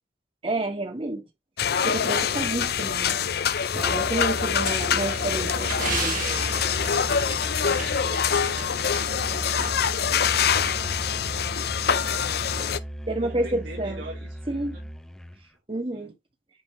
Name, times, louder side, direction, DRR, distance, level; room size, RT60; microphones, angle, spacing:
voice 1, 0.4-1.2 1.8-3.2 3.7-5.5 5.8-6.2 13.1-14.0 14.5-14.8 15.7-16.1, right 2 dB, 30° right, 1.7 m, -29 dB
sound 1, 1.6-12.8, left 7 dB, 55° left, 0.5 m, -25 dB
Musical instrument, 3.7-15.5, equal, 5° left, 0.7 m, -36 dB
sound 2, 4.6-8.6 8.9-9.0 9.6-9.7, right 5 dB, 45° right, 1.9 m, -34 dB
voice 2, 4.8-9.9 10.3-11.0 11.9-12.9 13.2-14.4 14.7-14.9 15.9-16.1, right 2 dB, 75° right, 3.0 m, -42 dB
9.9 x 4.7 x 3.1 m
head